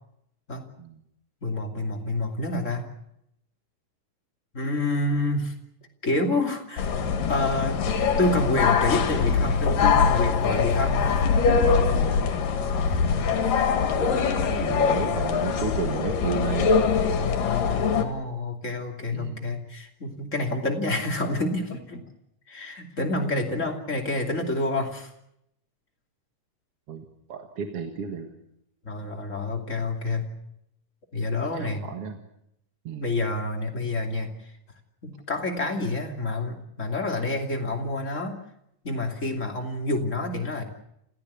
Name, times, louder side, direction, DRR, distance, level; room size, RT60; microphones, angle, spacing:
voice 1, 1.4-2.8 4.5-5.5 6.0-7.0 7.3-7.8 8.2-11.3 12.8-13.1 17.2-22.0 22.5-25.1 28.8-30.3 31.1-31.8 33.0-34.3 35.0-38.4 38.8-40.6, left 2 dB, 25° left, 2 dB, 2.7 m, -28 dB
sound 1, 6.8-18.0, left 5 dB, 85° left, 3.7 m, -23 dB
voice 2, 13.7-16.7 19.1-19.4 26.9-27.0 27.3-28.3 31.6-32.2 32.9-33.0, right 6 dB, 50° right, 4 dB, 2.3 m, -33 dB
28.0 x 15.5 x 8.3 m, 0.79 s
omnidirectional pair, 3.8 m